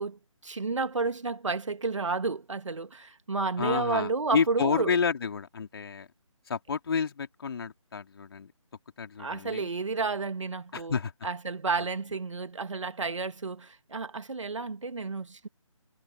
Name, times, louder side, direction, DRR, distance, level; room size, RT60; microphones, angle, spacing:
voice 1, 0.0-5.0 9.2-11.0 11.2-15.5, right 4 dB, 65° right, 2.1 m, -31 dB
voice 2, 3.6-6.1 6.5-8.5 9.0-9.7 10.7-11.1, left 6 dB, 45° left, 3.3 m, -30 dB
figure-of-eight pair, 150°, 17 cm